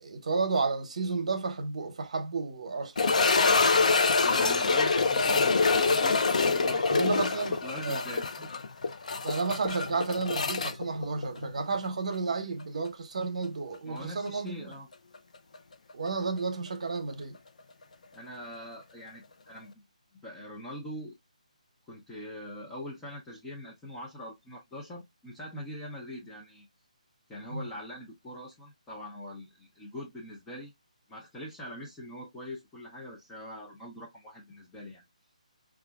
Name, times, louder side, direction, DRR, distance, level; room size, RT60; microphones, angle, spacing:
voice 1, 0.0-3.3 6.9-7.6 7.8-8.0 9.2-14.7 15.9-17.4 27.5-27.7, right 4 dB, 55° right, 0.8 m, -32 dB
sound 1, 3.0-11.9 12.1-12.2 12.9-13.0 15.5-15.6, left 4 dB, 65° left, 0.5 m, -25 dB
voice 2, 4.2-8.5 13.8-14.9 18.1-19.7 20.2-21.2 21.9-26.7 27.3-30.7 31.1-35.0, equal, 10° left, 0.5 m, -43 dB
4.8 x 2.4 x 2.3 m
hypercardioid pair, 160°, 4 cm